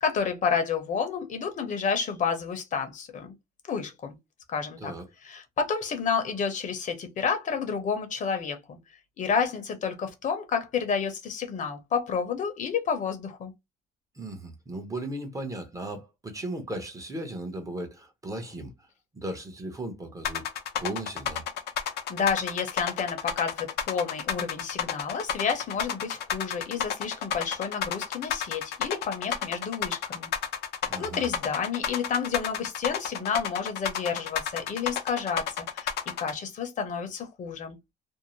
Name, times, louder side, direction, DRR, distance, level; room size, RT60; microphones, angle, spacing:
voice 1, 0.0-3.3 3.7-4.2 4.5-4.9 5.2-8.8 9.2-13.5 22.1-30.3 31.0-35.9 36.2-37.8, left 6 dB, 50° left, 0.8 m, -30 dB
voice 2, 14.1-18.9 19.1-20.5 20.8-21.4 30.9-31.2, right 1 dB, 20° right, 0.8 m, -36 dB
sound 1, 20.2-36.3, left 8 dB, 75° left, 0.7 m, -31 dB
2.6 x 2.0 x 3.0 m
cardioid pair, 110°, 17 cm